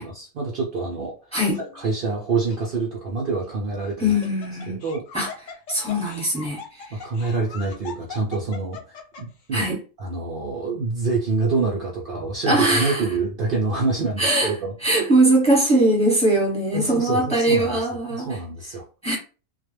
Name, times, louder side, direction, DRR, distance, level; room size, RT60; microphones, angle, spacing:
voice 1, 0.0-1.1 1.7-4.1 4.7-5.0 6.9-9.6 10.0-14.7 16.7-17.9 18.3-18.8, right 3 dB, 80° right, 0.4 m, -26 dB
Laughter, 1.4-1.9 2.5-2.6 3.8-9.4, left 6 dB, 65° left, 0.9 m, -40 dB
voice 2, 4.0-4.8 5.1-5.3 5.7-7.0 9.5-9.8 12.5-13.1 14.2-14.5 14.8-18.4 19.0-19.2, right 1 dB, 5° left, 0.8 m, -21 dB
2.3 x 2.2 x 3.1 m
omnidirectional pair, 1.6 m